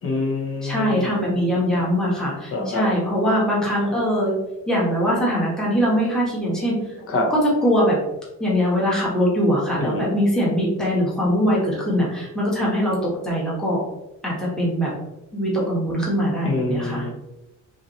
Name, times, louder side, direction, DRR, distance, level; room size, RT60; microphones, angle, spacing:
voice 1, 0.0-1.1 2.5-2.9 7.1-7.3 9.8-10.2 16.4-17.1, left 2 dB, 45° left, 1 dB, 0.9 m, -25 dB
voice 2, 0.6-4.3 4.7-6.8 7.3-8.0 8.4-13.0 13.2-13.8 14.2-14.9 15.3-17.0, equal, ahead, -6 dB, 1.2 m, -22 dB
6.0 x 2.7 x 3.0 m, 0.94 s
cardioid pair, 180°, 31 cm